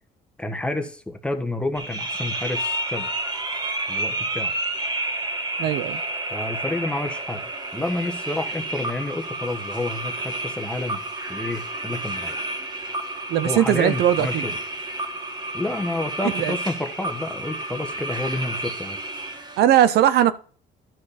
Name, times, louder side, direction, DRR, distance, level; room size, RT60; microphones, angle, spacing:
voice 1, 0.4-3.1 3.9-4.5 6.3-7.4 7.7-11.0 11.3-12.4 13.4-14.5 15.5-19.0, left 2 dB, 5° left, 1.3 m, -29 dB
sound 1, 1.7-19.6, right 1 dB, 25° right, 1.5 m, -30 dB
voice 2, 5.6-6.0 13.3-14.4 16.4-16.5 19.6-20.3, right 11 dB, 75° right, 0.7 m, -19 dB
11.5 x 4.9 x 4.1 m
cardioid pair, 110°, 17 cm